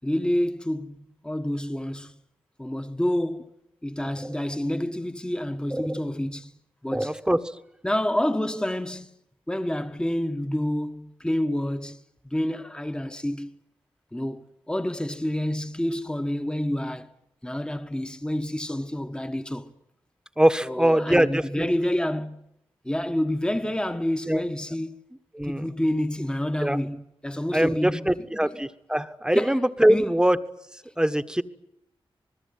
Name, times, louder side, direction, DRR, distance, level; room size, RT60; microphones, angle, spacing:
voice 1, 0.0-2.2 2.6-3.5 3.8-6.5 6.8-7.2 7.8-9.1 9.5-13.5 14.1-17.1 17.4-19.7 20.6-22.4 22.8-25.0 25.4-28.6 29.3-30.2, left 1 dB, 10° left, 1.4 m, -28 dB
voice 2, 6.9-7.4 20.4-21.7 24.2-24.4 25.3-25.7 26.6-26.8 27.5-30.4 31.0-31.4, right 1 dB, 10° right, 1.4 m, -22 dB
26.5 x 20.5 x 9.5 m
cardioid pair, 65°, 10 cm